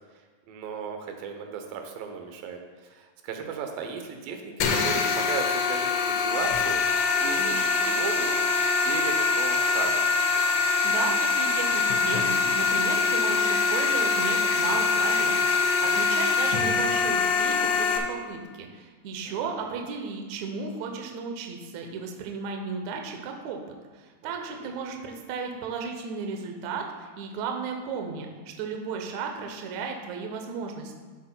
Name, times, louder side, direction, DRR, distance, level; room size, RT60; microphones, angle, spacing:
voice 1, 0.5-6.8 7.2-8.3 8.8-10.1 19.3-19.4 24.2-24.7, right 5 dB, 90° right, 4 dB, 2.6 m, -36 dB
sound 1, 4.6-18.0, left 4 dB, 75° left, 2.2 m, -24 dB
voice 2, 10.8-23.6 23.9-28.3 28.6-31.0, right 5 dB, 70° right, 3 dB, 1.9 m, -34 dB
13.0 x 7.8 x 2.2 m, 1.4 s
omnidirectional pair, 3.9 m